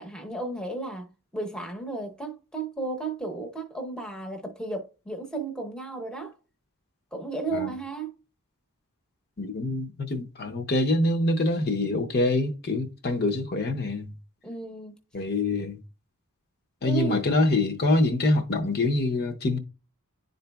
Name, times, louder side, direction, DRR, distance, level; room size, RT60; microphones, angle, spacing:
voice 1, 0.0-6.4 7.1-8.1 14.4-14.9 16.8-17.2, right 3 dB, 5° left, 0.8 m, -34 dB
voice 2, 9.4-14.1 15.1-15.8 16.8-19.6, left 2 dB, 45° left, 0.7 m, -25 dB
10.5 x 3.9 x 2.3 m
head